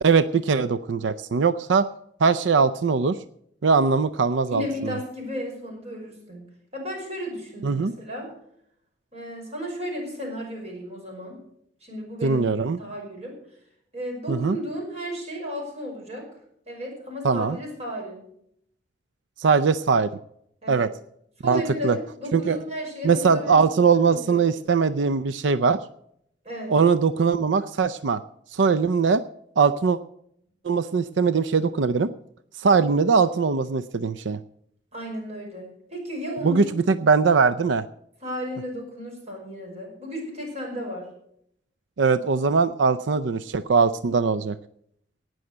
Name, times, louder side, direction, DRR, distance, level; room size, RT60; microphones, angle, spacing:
voice 1, 0.0-1.9 2.2-3.2 3.6-5.0 7.6-7.9 12.2-12.8 14.3-14.6 17.2-17.6 19.4-20.1 20.7-20.9 21.5-22.0 22.3-22.6 23.0-25.8 26.7-28.2 28.5-29.2 29.6-30.0 30.6-32.1 32.6-34.4 36.4-37.8 42.0-44.6, right 5 dB, 90° right, 14 dB, 0.5 m, -21 dB
voice 2, 4.5-6.4 6.7-8.3 9.1-11.4 11.8-13.3 13.9-16.2 16.7-18.2 20.6-20.9 21.4-23.6 24.1-24.4 26.4-26.7 34.9-36.7 38.2-41.1, equal, 35° right, 0 dB, 5.7 m, -34 dB
18.0 x 6.4 x 7.9 m, 0.72 s
head